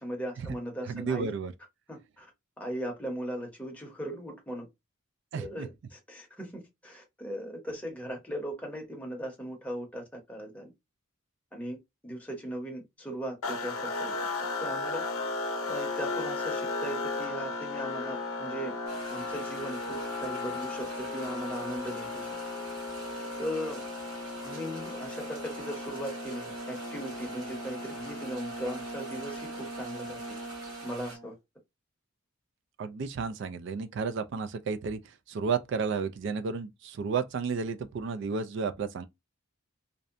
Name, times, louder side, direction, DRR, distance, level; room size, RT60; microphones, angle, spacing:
voice 1, 0.0-1.4 1.9-2.3 2.6-4.7 5.4-10.7 11.5-11.8 12.0-14.1 14.6-15.0 15.7-18.7 19.1-22.3 23.4-23.8 24.4-30.2 30.8-31.3, equal, 5° left, 0.7 m, -38 dB
voice 2, 0.9-1.5 5.3-5.7 32.8-39.1, right 5 dB, 55° right, 0.3 m, -32 dB
sound 1, 13.4-31.3, left 2 dB, 90° left, 0.5 m, -36 dB
sound 2, 18.9-31.2, right 2 dB, 85° right, 1.3 m, -47 dB
2.6 x 2.1 x 2.5 m
head